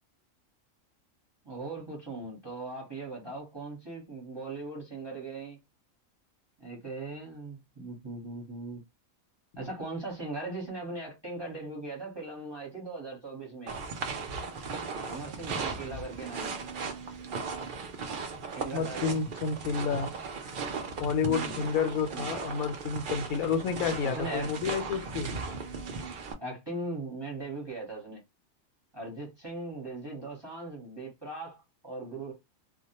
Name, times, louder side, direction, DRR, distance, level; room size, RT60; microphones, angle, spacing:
voice 1, 1.4-5.6 6.6-8.8 9.6-13.7 15.0-16.6 18.5-19.1 21.3-21.7 22.1-22.3 24.0-24.5 26.4-28.2 28.9-32.3, right 2 dB, 20° right, 0.8 m, -39 dB
sound 1, 13.7-26.3, right 4 dB, 70° right, 0.4 m, -37 dB
voice 2, 18.7-20.1 21.0-25.3, left 6 dB, 85° left, 1.0 m, -30 dB
2.3 x 2.1 x 2.8 m
omnidirectional pair, 1.4 m